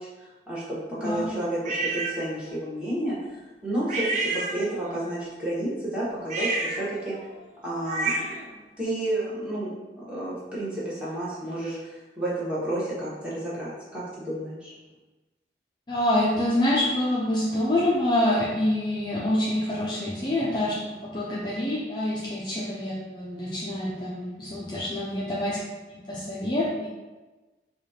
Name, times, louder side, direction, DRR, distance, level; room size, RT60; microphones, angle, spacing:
voice 1, 0.0-4.0 4.3-7.2 7.6-8.2 8.8-14.7, right 1 dB, 5° right, -9 dB, 1.1 m, -31 dB
sound 1, 1.6-2.2 3.9-5.0 6.2-8.5, right 3 dB, 40° right, 0.4 m, -30 dB
voice 2, 15.9-25.6 25.9-26.9, left 1 dB, 25° left, -7 dB, 0.4 m, -26 dB
4.9 x 2.4 x 2.8 m, 1.2 s
head